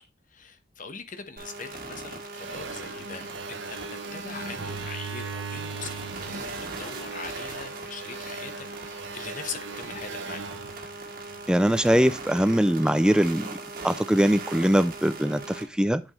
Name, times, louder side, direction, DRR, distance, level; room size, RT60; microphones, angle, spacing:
voice 1, 0.3-10.4, left 5 dB, 45° left, 1.0 m, -41 dB
sound 1, 1.4-15.6, right 3 dB, 50° right, 2.0 m, -40 dB
sound 2, 2.3-11.8, right 4 dB, 80° right, 0.9 m, -39 dB
voice 2, 11.5-13.6 13.8-16.0, equal, 5° right, 0.3 m, -22 dB
8.0 x 7.6 x 3.1 m
head